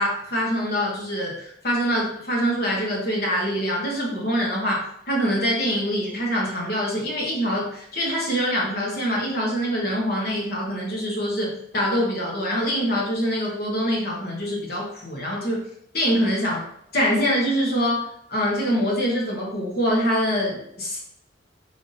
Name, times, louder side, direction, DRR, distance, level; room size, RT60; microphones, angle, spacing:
voice 1, 0.0-15.7 15.9-16.6 16.9-21.0, equal, 55° left, -3 dB, 1.3 m, -24 dB
3.6 x 3.4 x 4.0 m, 0.73 s
head